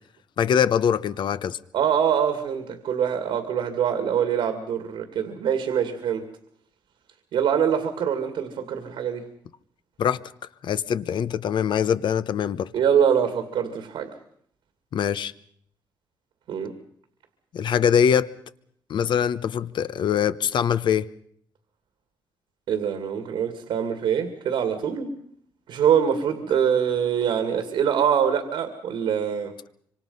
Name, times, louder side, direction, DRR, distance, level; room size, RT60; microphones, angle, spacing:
voice 1, 0.4-1.6 10.0-10.2 10.6-12.7 14.9-15.3 17.5-18.3 18.9-21.1, left 8 dB, 70° left, 1.0 m, -23 dB
voice 2, 1.7-6.3 7.3-9.3 12.7-14.1 16.5-16.7 22.7-25.1 25.7-29.5, right 8 dB, 85° right, 2.4 m, -24 dB
25.5 x 25.5 x 5.6 m
cardioid pair, 85°, 8 cm